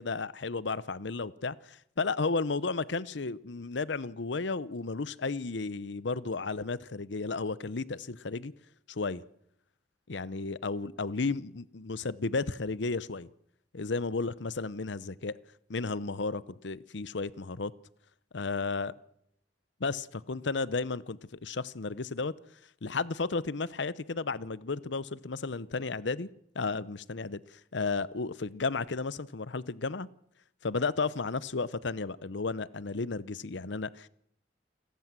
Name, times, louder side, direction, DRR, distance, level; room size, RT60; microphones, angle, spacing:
voice 1, 0.0-8.5 8.9-9.2 10.1-13.3 13.7-15.3 15.7-17.7 18.3-18.9 19.8-22.3 22.8-26.3 26.5-30.1 30.6-34.1, left 4 dB, 70° left, 0.8 m, -33 dB
29.0 x 14.0 x 7.6 m
head